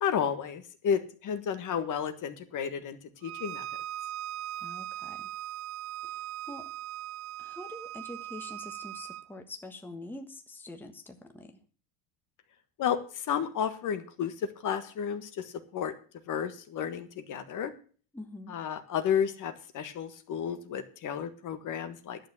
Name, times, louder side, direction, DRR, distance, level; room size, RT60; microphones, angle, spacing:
voice 1, 0.0-3.0 3.2-3.6 12.8-13.0 13.3-14.3 14.6-15.9 16.3-17.7 18.5-22.2, left 8 dB, 45° left, 9 dB, 1.5 m, -32 dB
Bowed string instrument, 3.2-9.3, right 13 dB, 60° right, 0.8 m, -39 dB
voice 2, 4.6-5.3 6.0-6.7 7.4-11.6 18.1-18.5, left 2 dB, 5° left, 5 dB, 1.3 m, -45 dB
11.0 x 6.7 x 8.5 m, 0.41 s
supercardioid pair, 120°, 45 cm